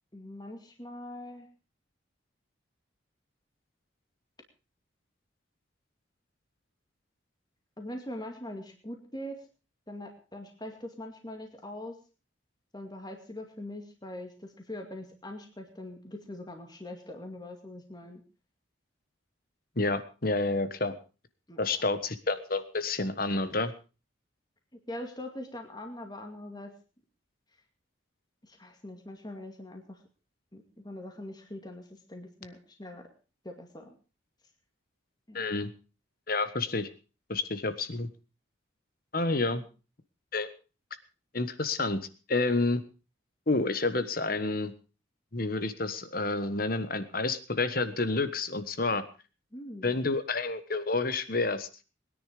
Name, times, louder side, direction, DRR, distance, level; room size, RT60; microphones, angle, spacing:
voice 1, 0.1-1.5 7.8-9.5 9.9-12.0 12.7-18.2 21.5-21.6 24.9-26.7 28.4-30.0 30.5-33.1 33.4-34.0 35.3-35.5 49.5-49.9, left 1 dB, 20° left, 3 dB, 2.2 m, -42 dB
voice 2, 19.8-21.0 21.6-23.7 35.3-35.7 36.3-36.9 37.3-38.1 39.1-39.6 40.3-40.5 41.3-42.0 42.3-42.8 43.5-44.7 45.3-49.0 49.8-51.7, left 3 dB, 45° left, 12 dB, 1.4 m, -29 dB
21.5 x 10.0 x 5.1 m, 0.35 s
head